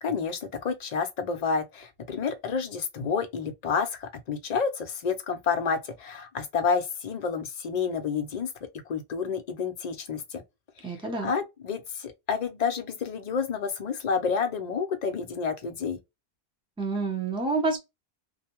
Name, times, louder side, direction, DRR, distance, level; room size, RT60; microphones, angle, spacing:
voice 1, 0.0-8.5 8.9-10.4 10.8-11.0 11.2-16.0, left 5 dB, 50° left, 0.6 m, -29 dB
voice 2, 10.8-11.3 16.8-17.8, right 3 dB, 5° right, 0.6 m, -28 dB
2.5 x 2.2 x 2.9 m
omnidirectional pair, 1.0 m